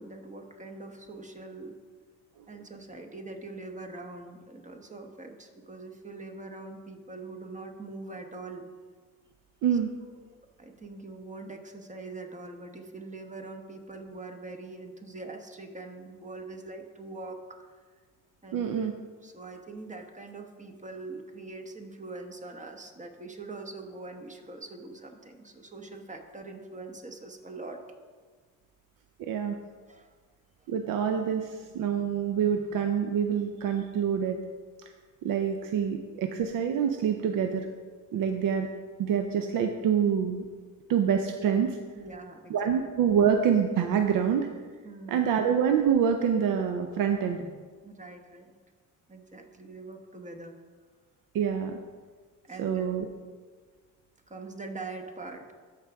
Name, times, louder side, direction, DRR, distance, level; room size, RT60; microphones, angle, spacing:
voice 1, 0.0-1.8 2.5-8.7 10.6-17.7 18.4-18.9 19.2-27.8 29.9-30.1 30.6-30.7 42.0-42.7 44.8-45.3 47.8-48.6 49.1-50.6 52.4-52.9 54.3-55.5, right 3 dB, 25° right, 4 dB, 1.0 m, -43 dB
voice 2, 18.5-18.9 29.2-29.6 30.7-34.4 35.2-37.7 38.1-38.7 39.0-40.4 40.9-41.8 42.5-44.5 45.1-47.5 51.3-51.8 52.6-53.1, right 7 dB, 85° right, 5 dB, 0.6 m, -26 dB
13.0 x 4.9 x 3.5 m, 1.5 s
cardioid pair, 95°, 32 cm